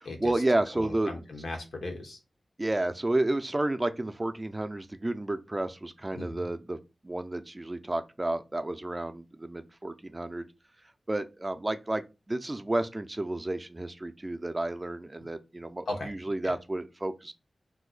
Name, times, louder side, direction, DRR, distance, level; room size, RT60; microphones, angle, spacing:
voice 1, 0.0-1.1 2.6-6.8 7.0-10.5 11.1-17.3, right 2 dB, 25° right, 0.4 m, -31 dB
voice 2, 0.8-2.2 6.1-6.4 15.9-16.1 16.4-16.5, left 2 dB, 90° left, 0.7 m, -37 dB
2.7 x 2.1 x 3.8 m
wide cardioid pair, 65°, 0 cm